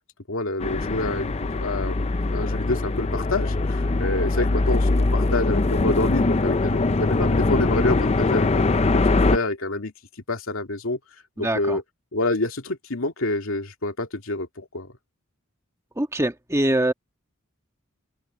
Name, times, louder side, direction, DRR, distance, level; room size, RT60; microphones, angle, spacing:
voice 1, 0.3-9.9 10.3-11.0 11.4-11.8 12.1-14.9, left 2 dB, 80° left, 2.5 m, -28 dB
sound 1, 0.6-9.4, left 2 dB, 30° left, 0.6 m, -22 dB
voice 2, 11.4-11.8 16.0-16.9, right 1 dB, 15° right, 1.6 m, -23 dB
head